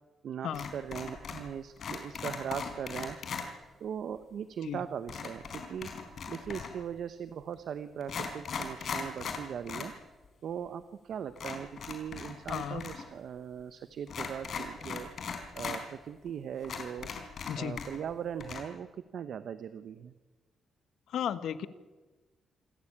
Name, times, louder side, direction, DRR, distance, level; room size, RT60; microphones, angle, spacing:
voice 1, 0.2-3.2 3.8-5.9 6.3-9.9 10.4-15.1 15.6-17.1 17.6-18.9 19.1-20.1, right 8 dB, 60° right, 12 dB, 0.9 m, -39 dB
sound 1, 0.5-1.5 1.8-3.5 5.1-6.8 7.5-7.6 8.0-9.9 10.2-10.3 11.4-13.0 13.3-13.4 14.1-15.8 16.3-16.4 16.6-18.1 18.4-18.6, left 6 dB, 50° left, 3.9 m, -39 dB
voice 2, 12.5-12.8 17.5-17.8 21.1-21.7, left 9 dB, 75° left, 13 dB, 1.4 m, -34 dB
27.0 x 14.5 x 8.7 m, 1.3 s
wide cardioid pair, 165°, 0 cm